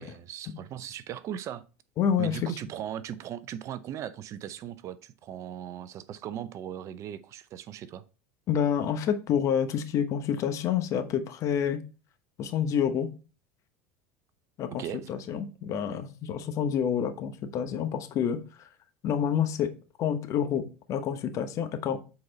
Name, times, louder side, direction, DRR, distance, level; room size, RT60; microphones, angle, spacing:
voice 1, 0.0-1.6 2.2-8.0 14.7-15.1, right 10 dB, 45° right, 0.6 m, -38 dB
voice 2, 2.0-2.5 8.5-11.8 12.4-13.1 14.6-18.4 19.0-19.7 20.0-22.0, left 8 dB, 45° left, 1.0 m, -28 dB
7.6 x 4.1 x 4.1 m
hypercardioid pair, 90°, 7 cm